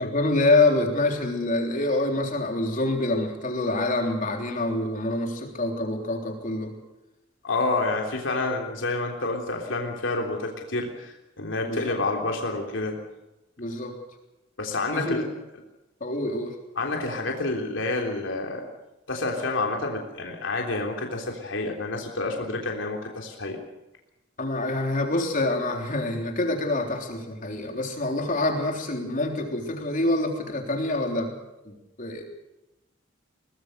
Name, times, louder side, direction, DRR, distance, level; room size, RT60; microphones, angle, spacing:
voice 1, 0.0-6.8 11.6-12.0 13.6-14.0 14.9-15.3 16.0-16.6 24.4-31.4 31.7-32.2, left 2 dB, 45° left, 3 dB, 3.6 m, -26 dB
voice 2, 7.4-13.0 14.6-15.2 16.8-18.7 19.1-23.6, left 2 dB, 70° left, 1 dB, 3.4 m, -28 dB
22.5 x 19.0 x 6.6 m, 0.97 s
head